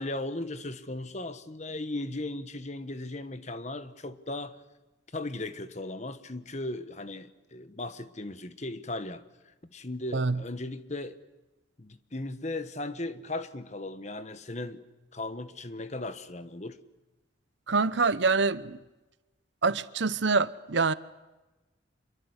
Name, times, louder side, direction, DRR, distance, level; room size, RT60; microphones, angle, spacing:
voice 1, 0.0-4.6 5.1-11.2 11.8-14.8 15.1-16.8, left 2 dB, 35° left, 1.4 m, -37 dB
voice 2, 17.7-18.8 19.6-20.9, right 4 dB, 70° right, 0.9 m, -25 dB
27.0 x 23.0 x 8.2 m
head